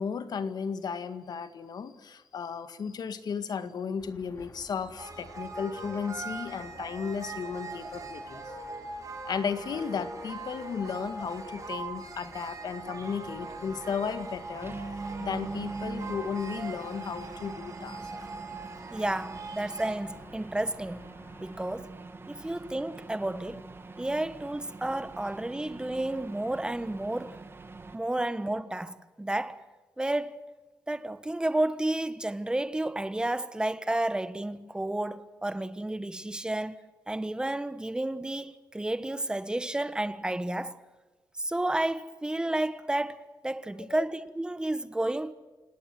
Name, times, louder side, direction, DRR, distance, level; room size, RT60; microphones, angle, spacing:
voice 1, 0.0-8.4 9.3-14.8 15.2-18.0 43.9-44.1, left 6 dB, 70° left, 1.9 m, -34 dB
sound 1, 4.0-21.8, left 3 dB, 45° left, 3.3 m, -55 dB
sound 2, 5.0-20.0, right 3 dB, 50° right, 5.8 m, -41 dB
sound 3, 13.3-28.0, right 3 dB, 30° right, 2.4 m, -44 dB
voice 2, 18.9-21.0 21.4-21.9 22.3-23.6 24.0-27.3 27.9-29.6 30.0-30.4 30.9-36.8 37.1-40.8 41.4-45.3, right 1 dB, 10° right, 1.3 m, -31 dB
29.0 x 18.5 x 7.8 m
wide cardioid pair, 110°, 7 cm